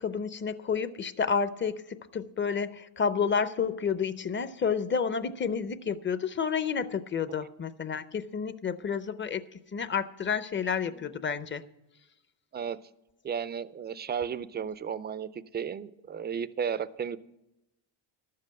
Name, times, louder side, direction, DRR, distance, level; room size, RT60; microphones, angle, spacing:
voice 1, 0.0-9.4 9.7-11.6, left 6 dB, 25° left, 0.6 m, -30 dB
voice 2, 13.2-17.2, right 7 dB, 25° right, 0.4 m, -34 dB
12.0 x 7.7 x 7.5 m
cardioid pair, 125°, 49 cm